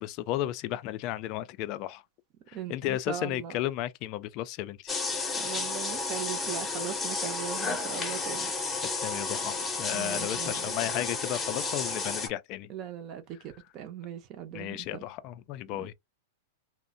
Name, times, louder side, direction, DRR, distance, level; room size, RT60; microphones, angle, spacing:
voice 1, 0.0-2.0 2.5-4.9 8.8-12.7 14.5-15.9, left 14 dB, 45° left, 0.3 m, -34 dB
voice 2, 2.5-3.5 5.3-8.5 9.0-9.2 9.9-10.8 12.7-15.0 15.7-15.9, right 10 dB, 40° right, 0.5 m, -39 dB
sound 1, 4.9-12.3, left 4 dB, 15° left, 0.7 m, -32 dB
2.7 x 2.0 x 2.5 m
hypercardioid pair, 135°, 0 cm